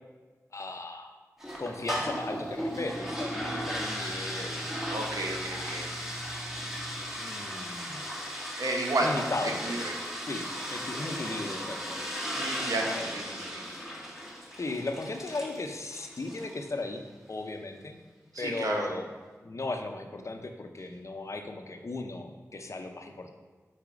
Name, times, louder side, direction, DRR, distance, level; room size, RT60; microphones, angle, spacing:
voice 1, 0.5-1.1 1.6-4.7 5.5-5.9 7.2-8.1 9.0-9.9 10.3-12.0 12.7-13.1 14.6-17.0 17.3-18.0 18.4-19.1 19.4-23.3, left 2 dB, 55° left, 5 dB, 0.6 m, -36 dB
sound 1, 1.4-16.7, equal, 5° right, 1.4 m, -36 dB
Mechanical fan, 1.7-7.0, right 1 dB, 15° left, 1.1 m, -45 dB
voice 2, 4.9-6.0 8.3-9.3 9.6-10.0 12.3-13.6 18.3-18.9, right 2 dB, 75° right, 0 dB, 0.9 m, -32 dB
4.9 x 4.1 x 4.7 m, 1.3 s
cardioid pair, 40°, 6 cm